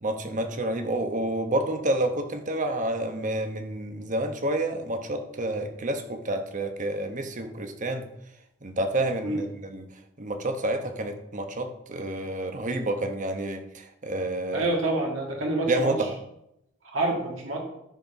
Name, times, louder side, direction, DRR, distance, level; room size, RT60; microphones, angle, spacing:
voice 1, 0.0-8.1 8.6-9.8 10.2-14.7 15.7-16.2, right 1 dB, 40° right, 6 dB, 1.0 m, -29 dB
voice 2, 14.5-16.0 16.8-17.6, right 2 dB, 70° right, 0 dB, 1.8 m, -27 dB
13.0 x 4.5 x 5.3 m, 0.83 s
head